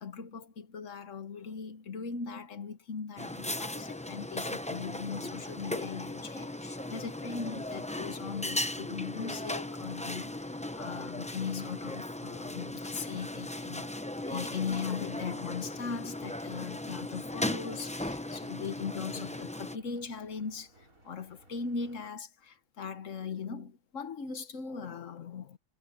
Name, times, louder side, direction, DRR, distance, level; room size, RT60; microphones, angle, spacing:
voice 1, 0.0-13.9 14.3-20.7 21.0-25.6, left 6 dB, 65° left, 1.5 m, -39 dB
sound 1, 3.2-19.8, left 1 dB, 10° left, 0.4 m, -37 dB
sound 2, 4.7-22.1, right 1 dB, 75° right, 7.2 m, -63 dB
omnidirectional pair, 1.5 m